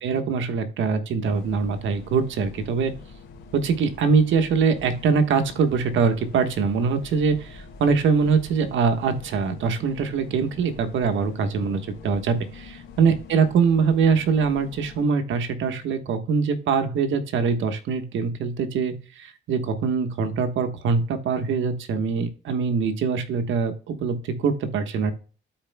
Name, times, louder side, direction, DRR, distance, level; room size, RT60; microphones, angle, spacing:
voice 1, 0.0-2.9 3.5-25.1, right 5 dB, 75° right, 7 dB, 1.2 m, -23 dB
sound 1, 1.2-15.0, left 4 dB, 90° left, 2.7 m, -45 dB
13.0 x 4.4 x 2.2 m, 0.38 s
cardioid pair, 90°, 20 cm